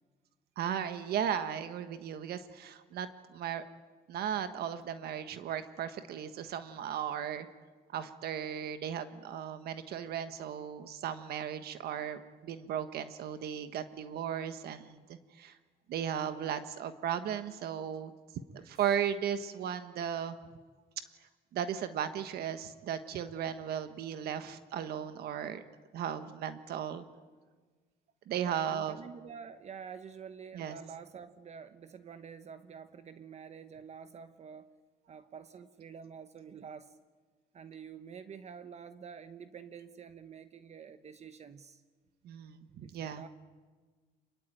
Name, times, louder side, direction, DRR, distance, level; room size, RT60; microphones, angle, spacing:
voice 1, 0.6-3.6 4.1-7.5 7.9-15.6 15.9-18.1 18.5-20.4 21.5-25.6 25.9-27.0 28.3-29.0 30.5-30.7 42.2-43.2, right 9 dB, 70° right, 10 dB, 1.4 m, -36 dB
voice 2, 28.4-34.7 35.1-37.0 37.5-41.8 42.8-43.3, right 7 dB, 40° right, 11 dB, 1.1 m, -48 dB
27.0 x 22.5 x 9.1 m, 1.5 s
cardioid pair, 110°, 17 cm